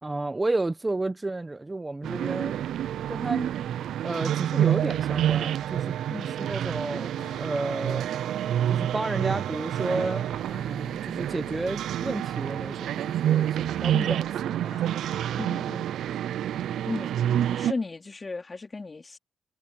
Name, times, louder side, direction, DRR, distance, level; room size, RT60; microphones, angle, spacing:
voice 1, 0.0-2.6 3.1-3.5 4.0-5.9 6.4-7.1 7.4-8.1 8.7-14.2 14.5-14.8, right 2 dB, 20° right, 1.2 m, -31 dB
sound 1, 2.0-17.7, right 11 dB, 90° right, 0.4 m, -28 dB
voice 2, 6.1-6.4 13.9-14.2 15.4-15.9 16.8-17.2 17.6-19.2, left 3 dB, 30° left, 2.7 m, -35 dB
sound 2, 6.9-8.9 9.8-12.2 13.0-15.6 16.1-16.2, left 8 dB, 75° left, 4.7 m, -54 dB
cardioid pair, 90°, 0 cm